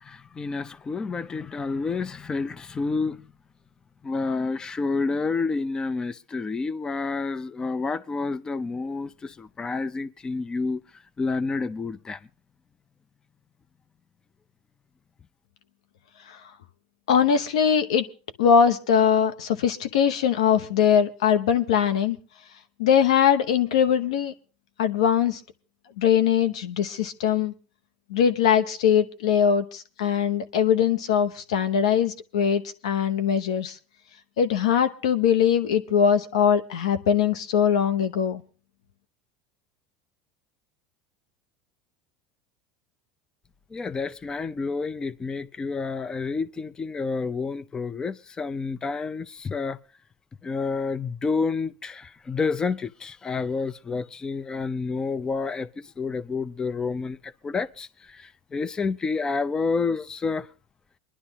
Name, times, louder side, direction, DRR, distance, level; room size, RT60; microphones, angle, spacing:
voice 1, 0.0-3.2 4.0-10.8 11.2-12.2 43.7-49.8 50.4-60.5, left 4 dB, 20° left, 0.6 m, -29 dB
voice 2, 17.1-18.1 18.4-22.2 22.8-24.3 24.8-25.4 26.0-27.5 28.1-33.8 34.4-38.4, left 8 dB, 85° left, 1.0 m, -21 dB
24.0 x 11.0 x 2.9 m
supercardioid pair, 100°, 3 cm